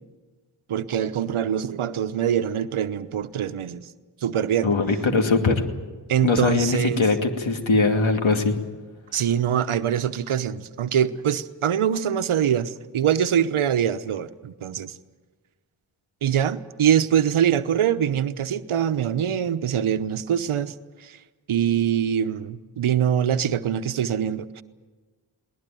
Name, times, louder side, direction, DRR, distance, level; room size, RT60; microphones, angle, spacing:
voice 1, 0.7-3.9 4.2-4.7 6.1-7.0 9.1-14.9 16.2-20.7 21.0-21.2 21.5-24.6, right 9 dB, 80° right, 12 dB, 1.0 m, -23 dB
voice 2, 4.6-5.6 6.2-8.5, left 3 dB, 70° left, 5 dB, 2.6 m, -21 dB
21.0 x 19.0 x 9.2 m, 1.3 s
cardioid pair, 50°, 49 cm